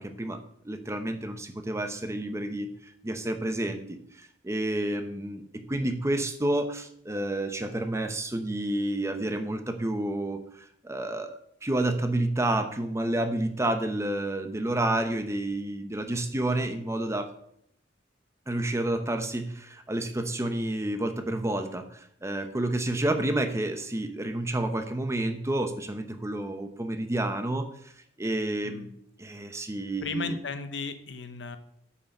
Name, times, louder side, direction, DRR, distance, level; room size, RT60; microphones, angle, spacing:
voice 1, 0.0-2.7 3.0-10.4 10.8-17.3 18.5-27.7 28.2-30.4, right 1 dB, 15° right, 7 dB, 0.9 m, -30 dB
voice 2, 30.0-31.6, left 4 dB, 70° left, 10 dB, 0.9 m, -35 dB
8.5 x 5.9 x 6.6 m, 0.70 s
head